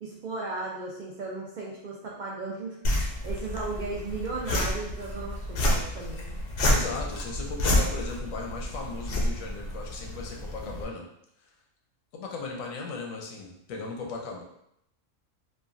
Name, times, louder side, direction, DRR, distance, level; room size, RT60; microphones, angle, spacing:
voice 1, 0.0-6.3, right 3 dB, 85° right, -4 dB, 0.4 m, -36 dB
sound 1, 2.8-10.8, left 1 dB, 60° left, 0.6 m, -29 dB
voice 2, 6.7-11.1 12.1-14.4, left 3 dB, 85° left, 1 dB, 1.0 m, -37 dB
3.1 x 2.3 x 2.4 m, 0.76 s
omnidirectional pair, 1.4 m